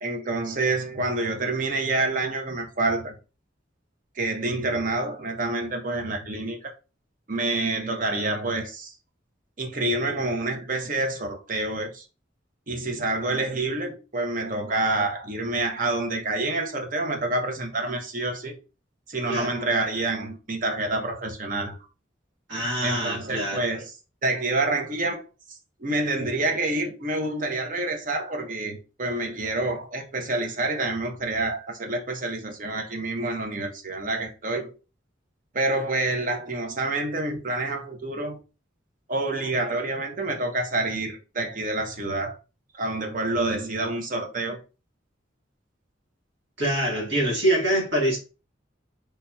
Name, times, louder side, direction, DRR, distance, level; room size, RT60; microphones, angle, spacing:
voice 1, 0.0-3.1 4.2-6.7 7.3-8.9 9.6-12.0 12.7-18.6 19.1-21.8 22.8-23.9 24.2-25.2 25.5-34.7 35.5-38.4 39.1-42.3 42.7-44.6, right 2 dB, 45° right, 0.7 m, -27 dB
voice 2, 22.5-23.6 46.6-48.2, right 1 dB, 65° right, 1.5 m, -25 dB
3.3 x 2.7 x 2.3 m
head